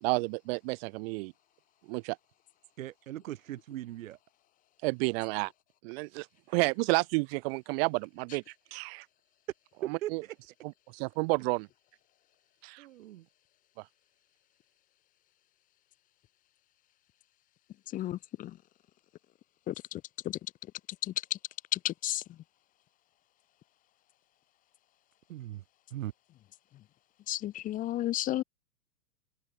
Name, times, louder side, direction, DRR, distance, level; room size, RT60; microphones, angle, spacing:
voice 1, 0.0-1.3 1.9-2.2 4.8-5.5 5.8-8.4 8.7-9.1 9.8-10.2 10.9-11.7 12.6-12.9, right 28 dB, 35° right, 1.9 m, -30 dB
voice 2, 2.8-4.2 9.8-10.3 12.8-13.2 25.3-25.6 25.9-26.1, right 14 dB, 55° right, 3.4 m, -39 dB
voice 3, 17.9-18.5 19.7-20.4 21.1-21.2 21.7-22.2 27.3-28.4, left 14 dB, 15° left, 0.9 m, -33 dB
open air
figure-of-eight pair, 115°, 49 cm